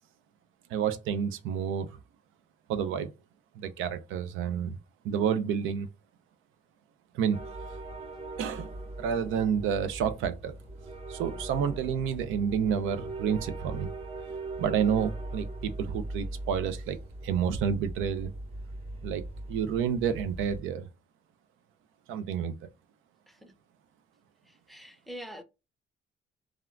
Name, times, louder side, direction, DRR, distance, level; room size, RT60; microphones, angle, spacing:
voice 1, 0.7-1.9 2.7-3.1 3.6-4.8 5.0-5.9 7.1-7.5 8.4-8.7 9.0-10.6 11.1-13.9 14.6-17.0 17.2-18.3 19.0-20.9 22.1-22.6, right 7 dB, 90° right, 0.4 m, -29 dB
sound 1, 7.3-20.6, right 2 dB, 30° right, 1.1 m, -40 dB
voice 2, 24.7-25.4, equal, ahead, 0.6 m, -44 dB
3.5 x 2.3 x 2.2 m
cardioid pair, 90°, 20 cm